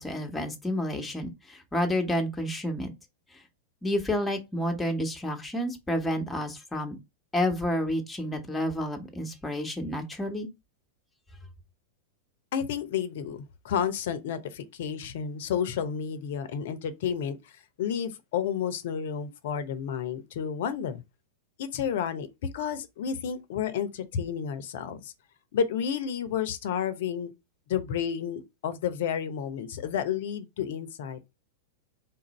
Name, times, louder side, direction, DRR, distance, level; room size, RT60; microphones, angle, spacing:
voice 1, 0.0-2.9 3.8-7.0 7.3-10.5, left 1 dB, 10° left, 1.2 m, -30 dB
voice 2, 12.5-17.4 17.8-21.0 21.6-25.1 25.5-27.3 27.7-31.3, left 8 dB, 65° left, 0.8 m, -31 dB
4.0 x 2.6 x 4.1 m
hypercardioid pair, 105°, 0 cm